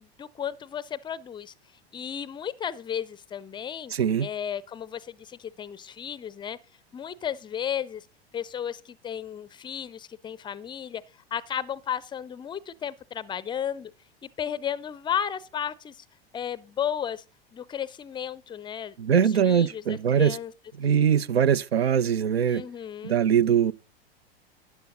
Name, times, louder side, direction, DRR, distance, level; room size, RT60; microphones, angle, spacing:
voice 1, 0.0-1.5 1.9-3.9 4.2-6.6 6.9-8.1 8.3-11.0 11.3-13.9 14.2-16.0 16.3-17.2 17.5-20.5 22.5-23.2, left 9 dB, 15° left, 0.4 m, -34 dB
voice 2, 3.9-4.3 19.0-20.4 20.8-22.6 23.0-23.7, right 8 dB, 80° right, 0.5 m, -22 dB
13.0 x 9.6 x 3.8 m
figure-of-eight pair, 90°, 31 cm